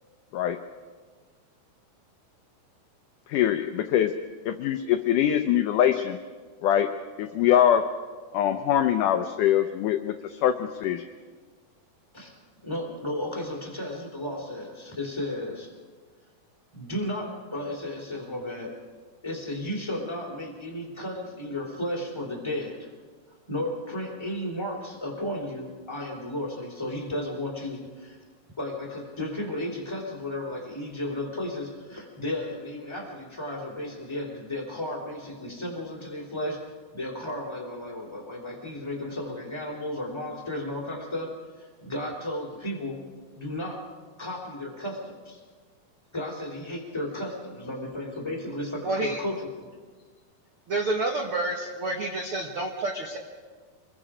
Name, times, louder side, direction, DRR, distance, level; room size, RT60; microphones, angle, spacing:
voice 1, 3.3-4.1 4.5-6.2 6.6-6.9 7.2-7.9 8.3-11.0, left 10 dB, 80° left, 8 dB, 1.8 m, -23 dB
voice 2, 12.6-15.7 16.7-18.8 19.2-22.9 23.5-28.2 28.6-36.6 36.9-41.3 41.6-43.0 43.3-43.8 44.2-45.4 46.1-49.7, left 1 dB, 10° left, -1 dB, 2.8 m, -34 dB
voice 3, 48.8-49.2 50.7-53.2, right 2 dB, 70° right, 2 dB, 1.3 m, -29 dB
26.5 x 21.5 x 5.0 m, 1.5 s
omnidirectional pair, 4.5 m